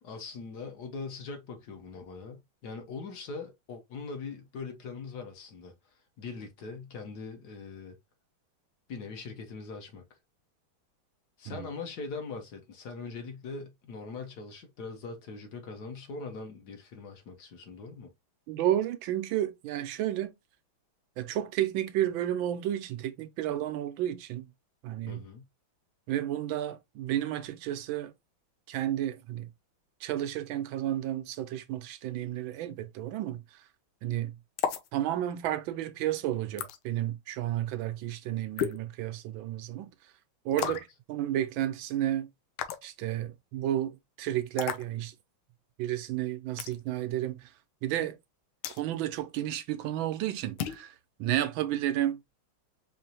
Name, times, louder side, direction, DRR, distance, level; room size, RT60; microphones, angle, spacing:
voice 1, 0.0-8.0 8.9-10.0 11.4-18.1 25.1-25.4 40.6-40.8, left 4 dB, 55° left, 1.4 m, -41 dB
voice 2, 18.5-20.3 21.2-24.5 24.8-25.2 26.1-28.1 28.7-29.5 30.0-33.4 34.0-34.4 34.9-39.9 40.4-40.8 41.1-42.3 42.8-45.1 45.8-47.5 47.8-48.2 48.8-52.2, right 12 dB, 75° right, 1.4 m, -32 dB
sound 1, 34.6-34.9 36.6-36.8 38.6-38.8 40.6-40.9 42.6-42.9 44.6-44.8 46.6-46.8 48.6-48.8 50.6-50.8, left 9 dB, 90° left, 1.6 m, -32 dB
5.1 x 2.8 x 2.8 m
omnidirectional pair, 2.2 m